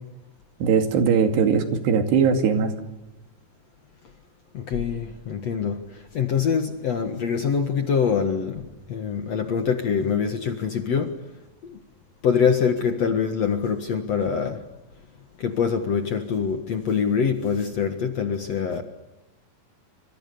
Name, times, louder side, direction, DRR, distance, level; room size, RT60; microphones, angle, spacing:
voice 1, 0.6-2.7, right 6 dB, 80° right, 4.5 m, -20 dB
voice 2, 4.5-5.8 6.1-11.1 12.2-14.6 15.4-18.8, left 6 dB, 55° left, 2.1 m, -24 dB
27.0 x 26.0 x 7.0 m
omnidirectional pair, 4.8 m